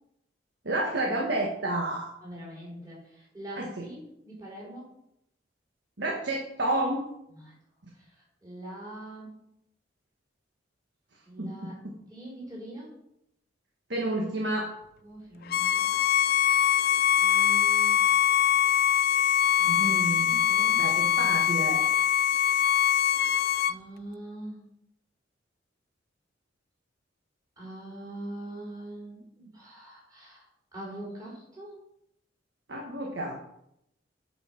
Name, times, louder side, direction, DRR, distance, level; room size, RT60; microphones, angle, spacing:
voice 1, 0.6-2.1 3.6-3.9 6.0-7.0 11.4-11.7 13.9-14.7 19.7-20.3 20.8-21.8 32.7-33.3, right 1 dB, 65° right, 0 dB, 1.4 m, -30 dB
voice 2, 2.2-4.9 7.3-7.5 7.9-9.3 11.2-11.8 12.1-12.9 15.0-15.9 17.2-18.0 19.6-19.9 20.2-20.8 21.1-21.2 23.6-24.7 27.6-31.7, right 1 dB, 20° right, -6 dB, 4.4 m, -43 dB
Bowed string instrument, 15.5-23.7, left 10 dB, 55° left, 0.3 m, -23 dB
9.8 x 5.3 x 6.0 m, 0.79 s
head